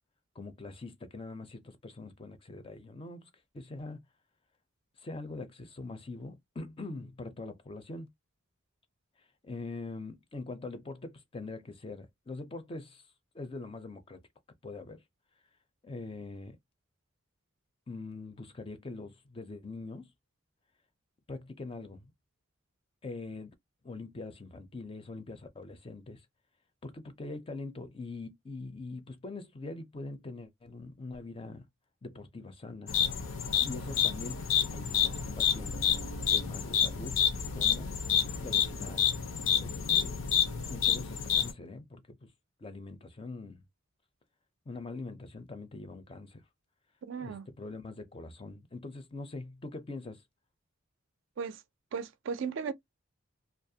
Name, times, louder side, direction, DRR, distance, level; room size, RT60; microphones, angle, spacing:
voice 1, 0.4-4.0 5.0-8.1 9.2-13.1 13.3-14.2 14.6-15.0 15.8-16.6 17.9-20.1 21.3-22.1 23.0-23.5 23.8-26.3 26.8-31.7 32.0-32.9 33.6-34.5 34.7-35.9 36.3-37.2 37.5-37.9 38.4-39.0 39.6-40.1 40.7-42.3 42.6-43.6 44.7-46.4 47.2-50.2, left 3 dB, 25° left, 0.4 m, -43 dB
sound 1, 32.9-41.5, left 9 dB, 80° left, 0.6 m, -29 dB
voice 2, 47.1-47.5 51.4-51.6 51.9-52.7, right 6 dB, 65° right, 0.4 m, -36 dB
2.4 x 2.1 x 2.6 m
head